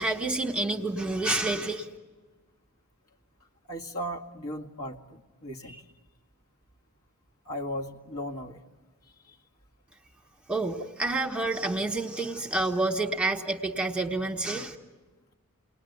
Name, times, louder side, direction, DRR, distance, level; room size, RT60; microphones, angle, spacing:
voice 1, 0.0-1.9 10.5-14.8, right 2 dB, 5° right, 3 dB, 1.4 m, -28 dB
voice 2, 3.7-5.9 7.5-8.6 9.2-9.4 10.8-10.9, equal, 70° left, 0 dB, 2.0 m, -37 dB
29.5 x 20.0 x 9.4 m, 1.3 s
head